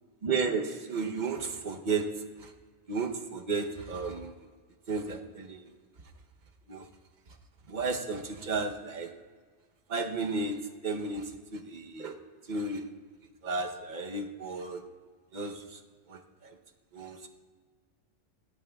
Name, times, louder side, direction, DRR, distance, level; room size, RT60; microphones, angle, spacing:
voice 1, 0.2-2.5 2.9-4.5 4.9-5.7 6.7-6.9 7.7-9.2 9.9-12.9 13.4-14.8 15.3-15.8 16.1-16.6 16.9-17.3, right 4 dB, 40° right, 4 dB, 1.0 m, -33 dB
18.5 x 15.0 x 2.3 m, 1.5 s
omnidirectional pair, 1.3 m